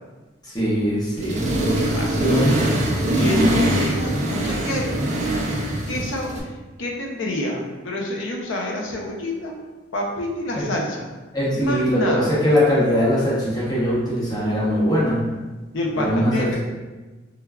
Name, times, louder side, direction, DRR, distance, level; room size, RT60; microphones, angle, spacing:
voice 1, 0.4-1.5 2.2-2.6 10.5-10.6 11.3-15.3 16.0-16.5, equal, 20° left, -8 dB, 0.8 m, -21 dB
Accelerating revving vroom, 1.2-6.4, right 1 dB, 40° right, 0.3 m, -22 dB
voice 2, 1.9-2.8 3.2-4.9 5.9-6.5 6.8-9.5 9.9-11.1 11.5-12.4 15.7-16.6, left 1 dB, 80° left, -1 dB, 0.5 m, -28 dB
3.3 x 2.3 x 2.2 m, 1.2 s
head